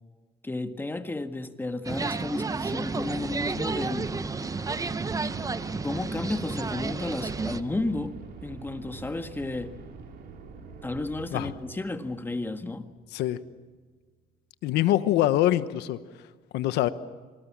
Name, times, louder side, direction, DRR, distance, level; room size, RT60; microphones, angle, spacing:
voice 1, 0.4-4.1 5.8-8.2 8.4-9.8 10.8-12.9, left 2 dB, 10° left, 1.7 m, -32 dB
sound 1, 1.8-7.6, right 4 dB, 20° right, 0.9 m, -31 dB
sound 2, 2.8-13.6, right 5 dB, 70° right, 5.0 m, -45 dB
voice 2, 14.6-16.0 16.5-16.9, left 14 dB, 85° left, 1.1 m, -24 dB
27.0 x 20.5 x 7.4 m
cardioid pair, 110°, 17 cm